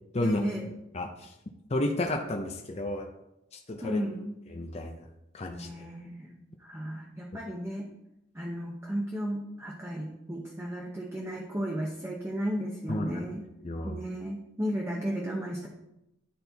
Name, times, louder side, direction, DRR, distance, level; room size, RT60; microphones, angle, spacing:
voice 1, 0.2-0.7 3.8-4.4 5.5-6.3 6.6-7.9 8.3-13.5 13.8-15.7, equal, 15° right, -2 dB, 0.8 m, -34 dB
voice 2, 0.9-1.3 1.7-3.1 3.7-4.0 4.5-5.0 5.3-5.7 12.9-13.2 13.6-14.0, left 1 dB, 35° left, 3 dB, 0.6 m, -31 dB
10.5 x 4.3 x 4.0 m, 0.88 s
head